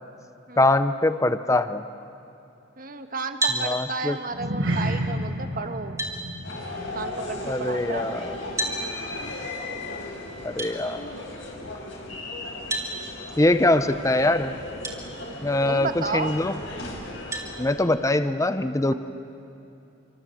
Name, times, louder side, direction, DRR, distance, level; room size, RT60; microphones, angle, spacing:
voice 1, 0.6-1.8 3.5-4.2 7.4-8.4 10.4-11.1 13.4-14.5 15.4-16.5 17.6-18.9, left 2 dB, 15° left, 11 dB, 0.7 m, -23 dB
voice 2, 2.8-6.0 6.9-8.5 15.6-16.3, right 4 dB, 45° right, 7 dB, 1.4 m, -33 dB
sound 1, 3.4-3.7 5.3-5.4 6.0-6.2 8.6-8.8 10.6-10.7 12.7-12.9 14.8-15.0 15.6-15.7 17.3-17.5, right 1 dB, 15° right, 2.9 m, -27 dB
sound 2, 4.3-8.9 9.2-9.5 9.9-10.0, right 1 dB, 70° right, 5.3 m, -32 dB
sound 3, 6.4-17.7, left 2 dB, 70° left, 5.3 m, -36 dB
26.5 x 25.0 x 7.7 m, 2.8 s
head